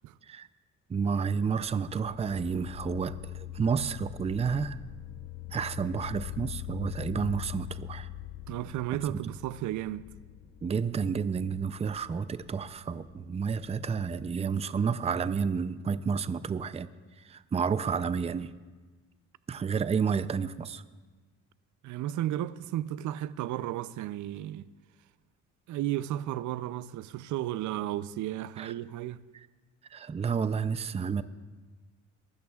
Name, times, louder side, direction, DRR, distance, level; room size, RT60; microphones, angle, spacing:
voice 1, 0.9-4.8 5.5-8.1 9.1-9.2 10.6-16.9 17.2-18.5 19.5-20.8 28.6-28.7 29.9-31.2, right 6 dB, 20° right, 0.4 m, -30 dB
sound 1, 1.6-14.3, left 15 dB, 55° left, 0.7 m, -43 dB
voice 2, 8.5-10.1 21.8-24.7 25.7-29.2, right 13 dB, 75° right, 0.5 m, -33 dB
23.0 x 13.0 x 2.4 m
cardioid pair, 90°, 30 cm